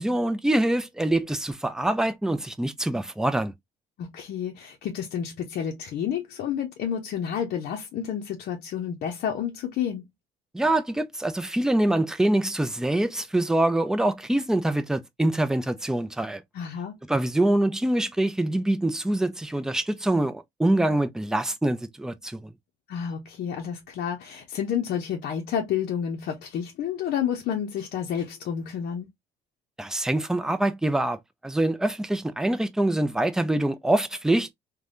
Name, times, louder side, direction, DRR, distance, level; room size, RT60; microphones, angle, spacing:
voice 1, 0.0-3.5 10.5-16.4 17.1-22.5 29.8-31.2 31.4-34.5, right 1 dB, 5° right, 0.4 m, -25 dB
voice 2, 4.0-10.0 16.5-17.0 22.9-29.1, left 8 dB, 65° left, 0.6 m, -30 dB
3.3 x 2.2 x 2.5 m
cardioid pair, 110°, 17 cm